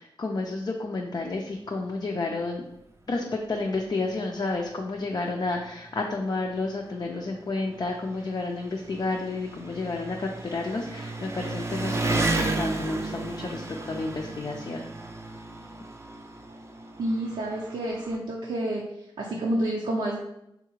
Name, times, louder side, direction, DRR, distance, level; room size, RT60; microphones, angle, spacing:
voice 1, 0.0-2.6 3.1-14.9, left 3 dB, 45° left, 0 dB, 0.4 m, -31 dB
Engine, 3.6-3.7 4.1-4.2 5.1-5.2 5.5-18.2, right 2 dB, 30° right, 0.5 m, -34 dB
voice 2, 17.0-18.8 19.2-20.2, right 1 dB, 80° right, -3 dB, 0.6 m, -29 dB
4.2 x 2.4 x 3.1 m, 0.82 s
wide cardioid pair, 75°, 9 cm